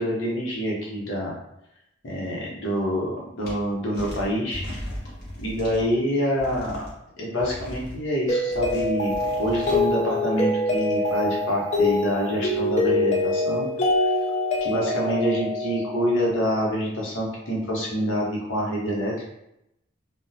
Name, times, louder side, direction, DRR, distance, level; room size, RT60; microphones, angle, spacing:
voice 1, 0.0-1.3 2.0-4.6 5.4-6.8 7.2-13.7 14.0-14.1 14.6-19.1, equal, 75° left, -3 dB, 0.9 m, -26 dB
sound 1, 3.4-3.5 3.9-5.8 6.4-6.9 7.4-8.0 8.5-9.8, equal, 50° left, 0.9 m, -37 dB
Mallet percussion, 8.3-16.4, left 2 dB, 35° left, 0.4 m, -25 dB
3.5 x 2.0 x 2.7 m, 0.84 s
head